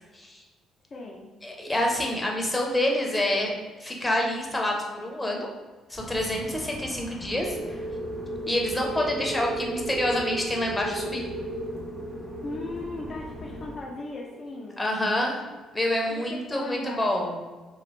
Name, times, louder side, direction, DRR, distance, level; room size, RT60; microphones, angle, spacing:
voice 1, 0.9-1.3 12.4-14.9 16.1-17.3, left 2 dB, 40° left, -3 dB, 0.5 m, -37 dB
voice 2, 1.4-3.5 3.8-5.5 5.9-7.6 8.5-11.2 14.8-15.5 15.7-17.4, left 1 dB, 15° left, -1 dB, 0.8 m, -27 dB
sound 1, 5.9-13.8, left 1 dB, 25° right, 1.0 m, -41 dB
sound 2, 7.4-15.7, right 1 dB, 65° right, 0.8 m, -36 dB
2.9 x 2.4 x 3.1 m, 1.3 s
hypercardioid pair, 50°, 0 cm